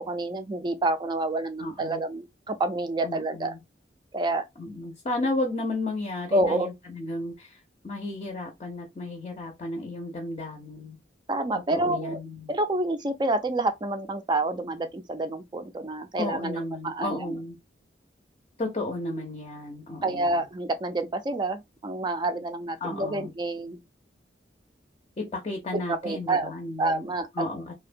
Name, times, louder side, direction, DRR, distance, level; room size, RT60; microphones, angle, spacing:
voice 1, 0.0-3.5 4.1-4.4 6.3-6.7 11.3-12.2 12.5-17.4 20.0-23.8 25.7-26.5 26.8-27.3, right 2 dB, 25° right, 0.3 m, -28 dB
voice 2, 1.6-2.0 3.0-3.6 4.6-11.0 11.7-12.5 16.2-17.6 18.6-20.4 22.8-23.3 25.2-27.0 27.3-27.7, left 2 dB, 35° left, 0.5 m, -33 dB
2.6 x 2.1 x 2.5 m
head